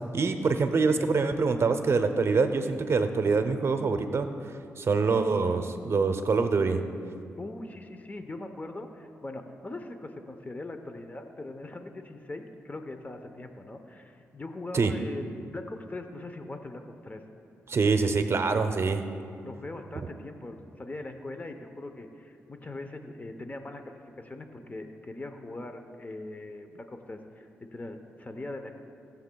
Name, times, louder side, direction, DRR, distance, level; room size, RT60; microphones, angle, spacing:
voice 1, 0.1-4.3 4.8-6.8 14.7-14.9 17.7-19.0, right 4 dB, 55° right, 8 dB, 0.6 m, -25 dB
voice 2, 7.4-17.2 19.4-28.8, left 2 dB, 30° left, 6 dB, 0.8 m, -41 dB
18.0 x 7.2 x 2.3 m, 2.5 s
supercardioid pair, 55°, 5 cm